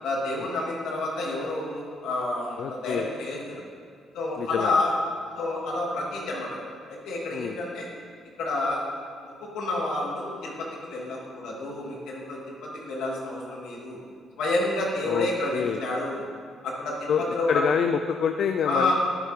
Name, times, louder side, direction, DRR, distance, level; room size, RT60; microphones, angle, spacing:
voice 1, 0.0-3.6 4.1-4.9 5.4-6.6 6.9-7.8 8.4-8.8 9.2-14.0 14.4-16.3 16.6-17.6 18.6-18.9, left 2 dB, 85° left, -4 dB, 2.9 m, -29 dB
voice 2, 2.6-3.1 4.4-4.7 7.3-7.6 15.0-15.9 17.1-18.9, left 7 dB, 65° left, 6 dB, 0.5 m, -27 dB
12.5 x 11.0 x 3.8 m, 2.2 s
cardioid pair, 90°, 0 cm